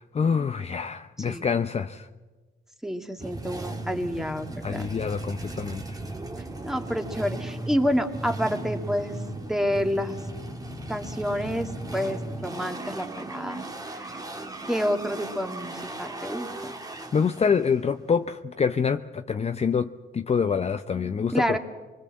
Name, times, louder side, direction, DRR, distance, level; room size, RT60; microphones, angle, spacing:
voice 1, 0.0-2.1 4.6-6.0 17.1-21.6, left 6 dB, 30° left, 9 dB, 0.7 m, -26 dB
voice 2, 2.8-4.9 6.6-9.2 9.5-10.2 10.9-14.1 14.7-16.7 21.3-21.6, equal, ahead, 5 dB, 2.2 m, -29 dB
sound 1, 3.2-18.4, right 2 dB, 20° right, 2.0 m, -37 dB
25.0 x 20.5 x 7.6 m, 1.3 s
cardioid pair, 90°, 20 cm